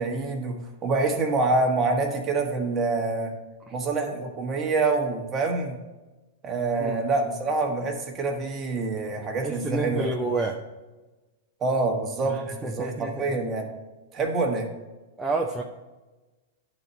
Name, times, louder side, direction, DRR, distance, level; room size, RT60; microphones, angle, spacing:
voice 1, 0.0-3.3 3.7-5.8 6.4-10.1 11.6-13.7 14.1-14.7, right 3 dB, 25° right, 2 dB, 1.4 m, -26 dB
voice 2, 9.4-10.6 12.3-13.4 15.2-15.6, right 3 dB, 10° right, -1 dB, 0.6 m, -29 dB
10.5 x 4.1 x 4.4 m, 1.2 s
hypercardioid pair, 120°, 0 cm